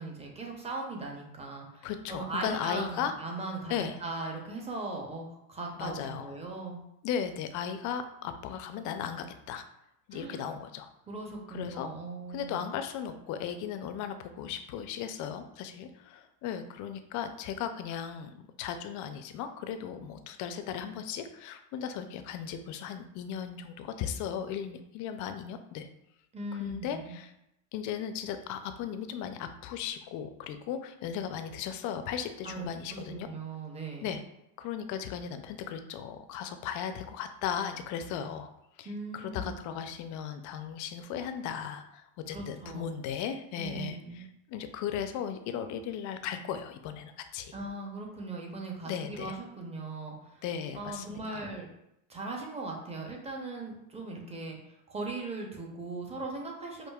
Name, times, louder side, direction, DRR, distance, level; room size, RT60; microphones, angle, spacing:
voice 1, 0.0-6.8 10.1-10.4 11.1-12.6 26.3-27.2 32.4-34.2 38.8-39.6 42.3-42.9 43.6-44.3 47.5-50.4 50.7-51.7 52.1-56.9, right 3 dB, 15° right, 0 dB, 0.6 m, -39 dB
voice 2, 1.8-3.1 3.7-4.0 5.8-6.3 7.0-9.7 10.1-10.9 11.5-11.9 12.3-25.9 26.6-27.3 27.7-33.3 34.0-34.2 34.6-38.5 38.8-38.9 39.1-47.5 48.9-49.4 50.4-51.5, left 8 dB, 45° left, 8 dB, 0.4 m, -36 dB
5.0 x 2.5 x 2.3 m, 0.82 s
supercardioid pair, 120°, 44 cm